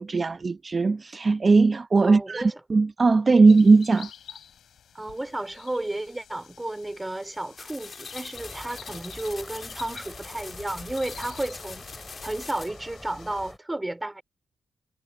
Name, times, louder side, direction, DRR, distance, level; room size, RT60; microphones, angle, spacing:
voice 1, 0.0-4.1, right 3 dB, 45° right, 0.8 m, -19 dB
voice 2, 2.0-2.6 4.9-11.8 12.2-14.2, right 1 dB, 20° right, 2.7 m, -33 dB
sound 1, 3.5-13.5, left 9 dB, 80° left, 3.3 m, -48 dB
sound 2, 7.6-12.7, left 4 dB, 45° left, 2.5 m, -43 dB
sound 3, 8.3-13.6, left 1 dB, 10° left, 4.4 m, -46 dB
cardioid pair, 55°, 0 cm